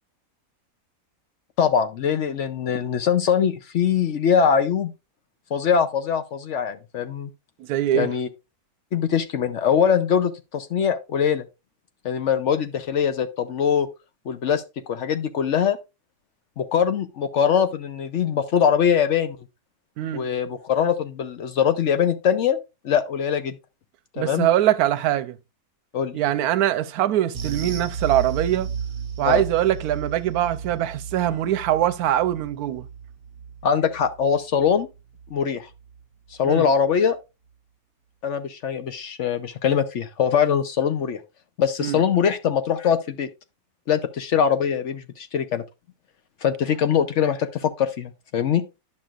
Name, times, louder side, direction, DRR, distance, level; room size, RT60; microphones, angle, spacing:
voice 1, 1.6-4.9 5.5-7.3 7.9-8.3 8.9-11.4 12.0-13.9 14.3-14.6 14.9-15.8 16.6-19.4 20.1-22.6 22.8-23.6 24.2-24.5 25.9-26.2 29.2-29.4 33.6-34.9 35.3-35.7 36.4-37.2 38.2-41.2 41.6-43.3 43.9-45.6 46.4-48.6, left 7 dB, 60° left, 0.9 m, -22 dB
voice 2, 7.6-8.1 20.0-20.3 24.2-25.4 26.1-28.7 29.2-32.8 36.4-36.7 41.8-42.0, right 12 dB, 85° right, 1.1 m, -22 dB
sound 1, 27.3-36.0 36.3-36.5 36.9-37.0, right 7 dB, 70° right, 1.2 m, -34 dB
11.0 x 5.8 x 2.4 m
omnidirectional pair, 1.6 m